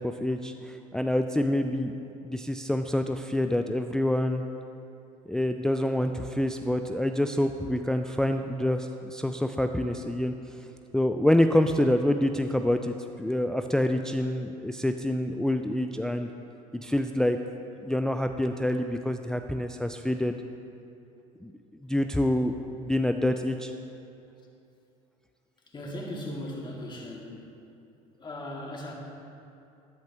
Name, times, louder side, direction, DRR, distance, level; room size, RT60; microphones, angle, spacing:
voice 1, 0.0-1.9 2.2-4.4 5.3-10.3 10.9-16.3 16.8-17.4 17.8-20.4 21.4-21.5 21.8-23.7, left 1 dB, 5° left, 6 dB, 0.4 m, -27 dB
voice 2, 25.6-27.5 28.2-28.9, left 1 dB, 25° left, -2 dB, 2.2 m, -38 dB
13.0 x 10.5 x 3.0 m, 2.7 s
hypercardioid pair, 70°, 18 cm